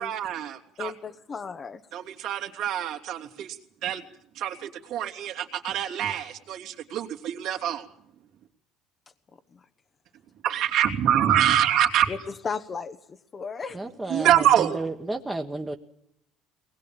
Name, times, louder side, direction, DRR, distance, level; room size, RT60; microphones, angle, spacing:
voice 1, 0.0-0.9 1.9-3.6 3.8-4.0 4.3-7.9 10.4-12.1 14.1-14.8, right 10 dB, 60° right, 3 dB, 2.9 m, -25 dB
voice 2, 0.8-1.8 9.5-9.6 12.1-12.2 12.4-13.8, left 5 dB, 25° left, 7 dB, 1.0 m, -35 dB
voice 3, 13.7-15.8, right 2 dB, 10° right, 1 dB, 1.3 m, -32 dB
22.5 x 20.5 x 8.9 m, 0.71 s
cardioid pair, 160°, 0 cm